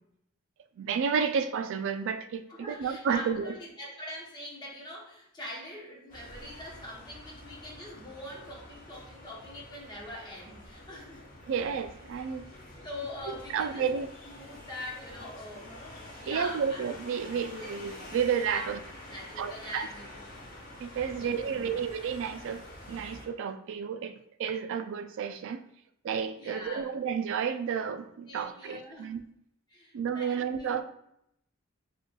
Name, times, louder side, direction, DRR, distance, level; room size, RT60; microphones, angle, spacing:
voice 1, 0.8-3.5 11.5-12.5 13.3-14.1 16.3-18.8 19.4-19.9 20.8-25.6 26.0-29.2 29.9-30.8, right 7 dB, 65° right, 9 dB, 0.3 m, -31 dB
voice 2, 2.5-11.2 12.3-12.5 12.8-15.7 16.2-16.9 17.6-17.7 18.5-20.2 21.1-21.8 26.4-26.9 28.3-29.2 29.7-30.8, left 1 dB, 20° left, -3 dB, 0.9 m, -43 dB
sound 1, 6.1-23.3, left 1 dB, 40° left, 1.1 m, -47 dB
5.0 x 2.4 x 2.3 m, 0.77 s
head